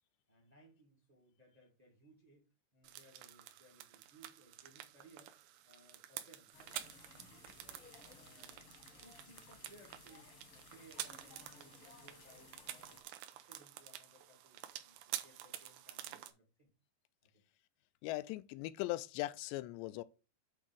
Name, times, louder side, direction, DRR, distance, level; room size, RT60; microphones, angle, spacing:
voice 1, 0.3-2.4 2.7-5.3 5.6-6.9 7.3-7.9 8.1-8.7 8.9-10.3 10.5-13.0 13.3-16.7 17.2-17.4, right 1 dB, 30° right, 0.7 m, -64 dB
sound 1, 2.8-16.3, right 13 dB, 80° right, 2.6 m, -49 dB
sound 2, 6.5-13.0, left 4 dB, 55° left, 1.5 m, -59 dB
voice 2, 18.0-20.0, left 17 dB, 85° left, 2.8 m, -39 dB
8.4 x 3.6 x 6.3 m
omnidirectional pair, 5.0 m